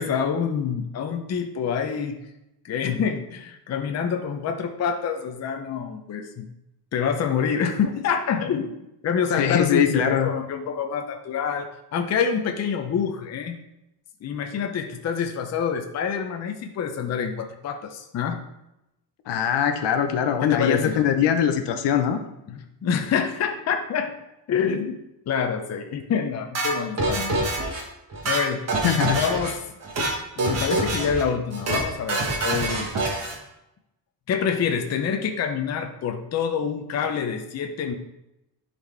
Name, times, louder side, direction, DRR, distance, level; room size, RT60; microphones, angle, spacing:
voice 1, 0.0-2.2 2.6-6.5 6.9-8.7 9.0-13.6 14.2-18.4 20.4-21.0 22.5-24.1 24.5-25.0 25.3-27.5 28.2-28.7 29.1-29.6 30.4-32.9 34.3-37.9, left 7 dB, 35° left, 4 dB, 0.6 m, -26 dB
voice 2, 9.3-10.3 19.3-22.2 28.8-29.2, left 8 dB, 70° left, 8 dB, 0.9 m, -22 dB
sound 1, 26.5-27.8 28.1-29.5 29.8-30.1 30.4-31.2 31.5-31.8 32.1-33.4, right 2 dB, 35° right, 1.4 m, -25 dB
11.0 x 4.3 x 3.3 m, 0.89 s
cardioid pair, 165°, 43 cm